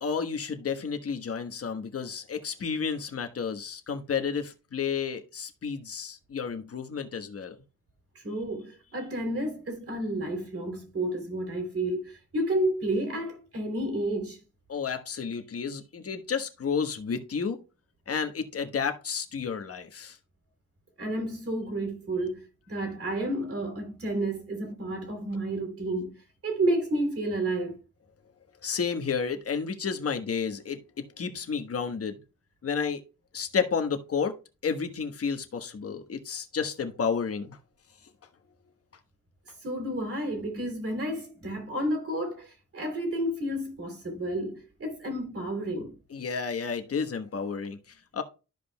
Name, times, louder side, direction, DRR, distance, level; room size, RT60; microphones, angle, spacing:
voice 1, 0.0-7.6 14.7-17.6 18.1-20.2 28.6-32.2 32.6-33.0 33.3-34.3 34.6-37.6 46.1-48.2, left 6 dB, 50° left, 1.2 m, -31 dB
voice 2, 8.1-14.4 21.0-26.2 26.4-27.8 39.6-46.0, right 1 dB, 50° right, 3.2 m, -31 dB
13.5 x 5.0 x 2.2 m
cardioid pair, 105°, 30 cm